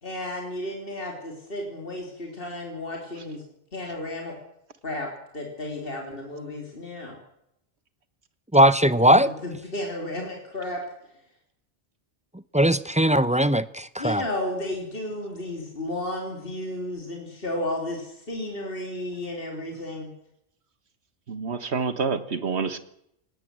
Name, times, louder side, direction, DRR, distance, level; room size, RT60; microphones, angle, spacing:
voice 1, 0.0-3.4 3.7-4.4 4.8-5.1 5.3-7.2 9.0-10.8 14.0-20.1, left 1 dB, 50° left, 1 dB, 3.7 m, -33 dB
voice 2, 8.5-9.3 12.5-14.2, right 1 dB, 10° right, 15 dB, 0.5 m, -19 dB
voice 3, 21.3-22.8, right 5 dB, 65° right, 12 dB, 1.8 m, -27 dB
19.5 x 18.5 x 7.7 m, 0.77 s
omnidirectional pair, 1.2 m